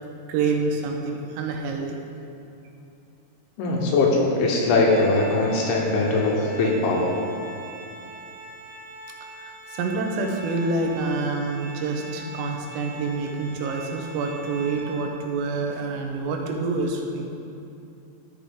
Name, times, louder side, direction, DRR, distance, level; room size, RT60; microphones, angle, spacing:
voice 1, 0.3-2.0 9.4-17.3, right 3 dB, 90° right, 2 dB, 3.6 m, -27 dB
voice 2, 3.6-7.1, left 3 dB, 75° left, -1 dB, 3.0 m, -21 dB
Organ, 4.7-15.4, right 2 dB, 55° left, 2.0 m, -41 dB
14.0 x 5.6 x 3.6 m, 2.7 s
omnidirectional pair, 5.8 m